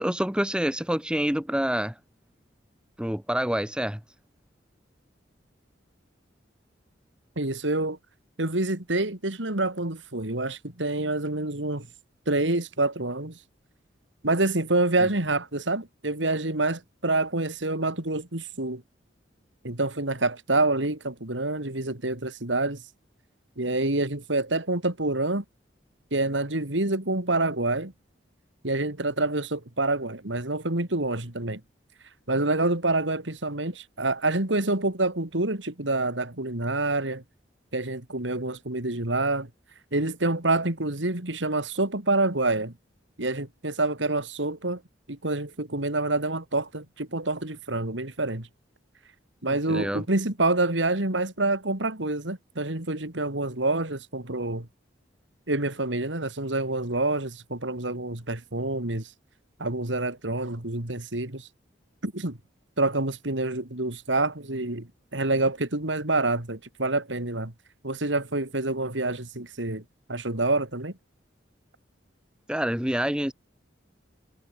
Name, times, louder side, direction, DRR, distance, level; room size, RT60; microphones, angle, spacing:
voice 1, 0.0-2.0 3.0-4.0 15.0-15.1 49.5-50.0 72.5-73.3, equal, 5° right, 1.2 m, -27 dB
voice 2, 7.4-8.0 8.4-11.9 12.3-13.4 14.2-18.8 19.6-22.8 23.6-25.4 26.1-27.9 28.6-31.6 32.3-37.2 37.7-39.5 39.9-42.7 43.2-44.8 45.1-48.5 49.4-54.7 55.5-59.1 59.6-61.5 62.0-62.4 62.8-67.5 67.8-69.8 70.1-70.9, right 2 dB, 75° right, 3.3 m, -27 dB
head